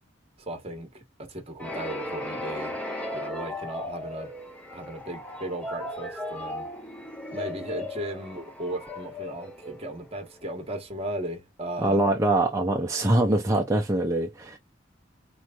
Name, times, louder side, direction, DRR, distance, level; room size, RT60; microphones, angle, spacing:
voice 1, 0.4-2.8 3.1-4.3 4.7-6.7 7.3-12.0, right 1 dB, 35° right, 1.3 m, -36 dB
sound 1, 1.6-10.3, left 1 dB, 10° left, 1.0 m, -36 dB
voice 2, 11.8-14.6, right 1 dB, 15° right, 0.6 m, -23 dB
4.4 x 3.1 x 2.5 m
head